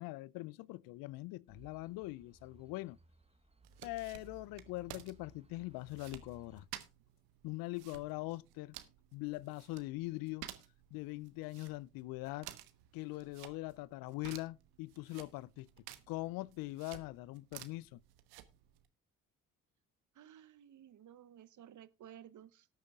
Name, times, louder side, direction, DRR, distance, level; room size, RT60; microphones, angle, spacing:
voice 1, 0.0-3.0 3.8-6.7 7.4-8.7 9.1-10.5 10.9-12.5 12.9-15.7 16.1-18.0, left 20 dB, 65° left, 0.5 m, -42 dB
sound 1, 1.5-6.7, right 4 dB, 15° right, 1.3 m, -61 dB
sound 2, 3.6-18.9, right 14 dB, 70° right, 1.2 m, -54 dB
voice 2, 20.1-22.7, right 10 dB, 50° right, 0.9 m, -55 dB
18.5 x 8.9 x 2.4 m
hypercardioid pair, 50°, 39 cm